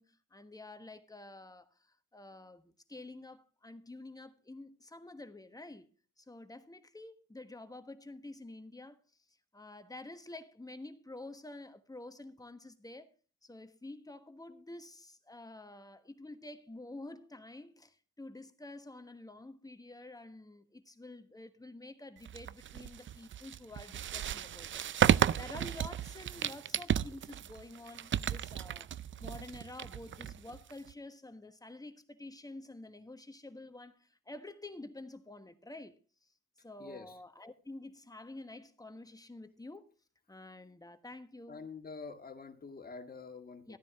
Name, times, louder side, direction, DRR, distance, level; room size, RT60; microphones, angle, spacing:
voice 1, 0.0-5.9 6.2-9.0 9.3-13.1 13.4-36.3 36.6-39.9 40.3-41.7 43.7-43.8, left 2 dB, 10° left, 1.3 m, -49 dB
sound 1, 22.3-30.9, right 10 dB, 40° right, 0.4 m, -33 dB
voice 2, 36.8-37.2 41.5-43.8, left 4 dB, 30° left, 1.9 m, -47 dB
14.0 x 9.8 x 3.6 m
cardioid pair, 90°, 30 cm